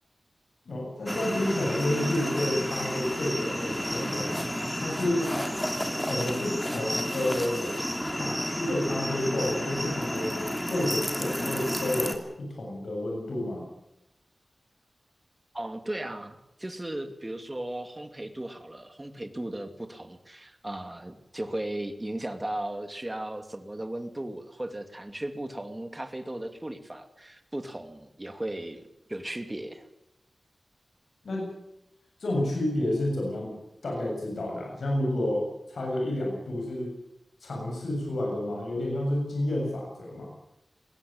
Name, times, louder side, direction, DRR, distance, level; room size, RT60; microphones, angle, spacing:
voice 1, 0.7-4.4 4.8-5.3 6.0-7.7 8.1-10.4 10.7-13.7 31.2-31.6 32.2-33.6 33.8-36.9 37.4-40.3, left 1 dB, 85° left, 0 dB, 7.3 m, -30 dB
sound 1, 1.1-12.2, equal, 10° left, 3.0 m, -31 dB
voice 2, 15.5-28.8 29.1-29.9, right 1 dB, 20° right, 7 dB, 2.5 m, -36 dB
21.0 x 17.0 x 8.8 m, 0.88 s
wide cardioid pair, 90°, 0 cm